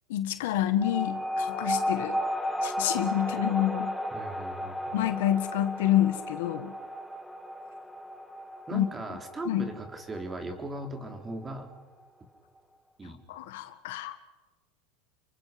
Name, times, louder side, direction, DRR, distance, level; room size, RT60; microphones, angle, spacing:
voice 1, 0.1-2.2 2.6-4.0 4.9-6.7 8.7-8.8 9.5-9.7 13.3-14.1, left 12 dB, 75° left, 10 dB, 1.7 m, -28 dB
sound 1, 0.8-11.7, left 1 dB, ahead, 1.5 m, -34 dB
voice 2, 4.1-5.0 8.7-11.7 13.0-13.2, right 2 dB, 15° right, 5 dB, 3.6 m, -38 dB
29.5 x 23.5 x 5.3 m, 1.2 s
supercardioid pair, 125°, 0 cm